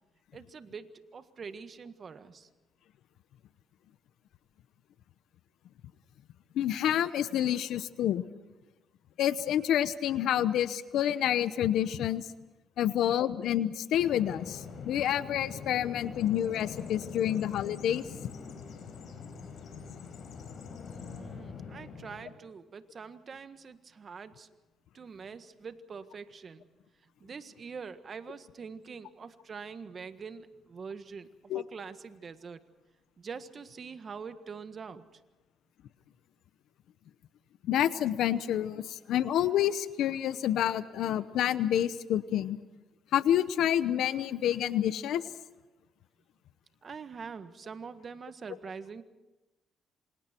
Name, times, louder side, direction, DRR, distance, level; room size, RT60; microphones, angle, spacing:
voice 1, 0.3-2.5 20.9-24.5 24.9-26.6 27.2-31.3 31.5-32.6 33.2-35.2 46.8-49.0, right 5 dB, 45° right, 10 dB, 1.6 m, -44 dB
voice 2, 6.5-8.2 9.2-12.2 12.8-18.0 31.5-31.6 37.6-42.6 43.1-45.2, left 11 dB, 80° left, 14 dB, 0.9 m, -28 dB
Bird vocalization bird call bird song, 14.0-22.3, left 5 dB, 65° left, 5.1 m, -44 dB
27.5 x 26.5 x 4.5 m, 1.1 s
cardioid pair, 90°, 0 cm